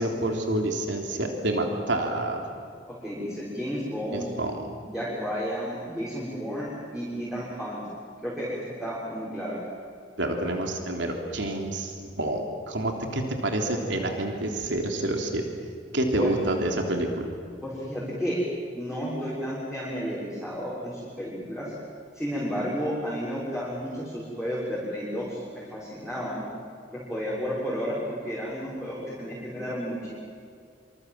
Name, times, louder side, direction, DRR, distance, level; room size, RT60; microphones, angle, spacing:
voice 1, 0.0-2.4 4.1-4.7 10.2-15.4 15.9-17.3, right 1 dB, 75° right, 2 dB, 3.4 m, -28 dB
voice 2, 3.0-4.3 4.8-7.8 8.2-9.6 16.2-16.3 17.6-18.4 18.7-21.7 22.1-26.5 26.9-30.1, equal, 5° right, -8 dB, 6.6 m, -32 dB
27.0 x 26.5 x 7.8 m, 2.3 s
head